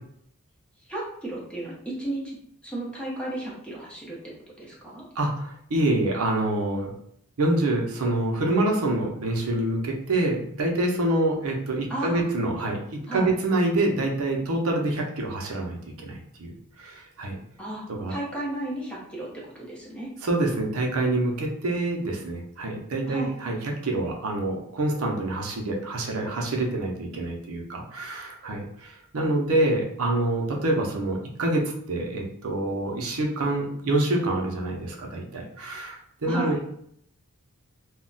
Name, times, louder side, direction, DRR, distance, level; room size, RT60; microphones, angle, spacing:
voice 1, 0.9-4.2 4.6-5.0 11.9-12.2 13.1-13.3 17.6-20.1 23.1-23.3 36.3-36.6, right 1 dB, 5° left, -5 dB, 0.6 m, -34 dB
voice 2, 5.2-6.9 7.4-12.8 13.1-17.3 17.9-18.1 20.2-31.6 31.9-36.7, right 2 dB, 70° right, 1 dB, 0.5 m, -26 dB
2.2 x 2.1 x 3.8 m, 0.70 s
head